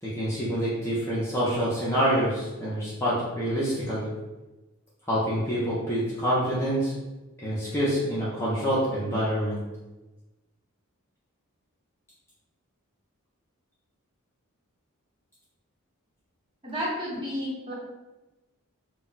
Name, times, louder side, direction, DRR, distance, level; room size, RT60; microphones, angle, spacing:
voice 1, 0.0-4.1 5.1-6.9 7.4-9.6, equal, 10° left, -8 dB, 0.5 m, -26 dB
voice 2, 16.6-17.7, equal, 25° right, -7 dB, 0.9 m, -31 dB
2.2 x 2.1 x 3.8 m, 1.1 s
head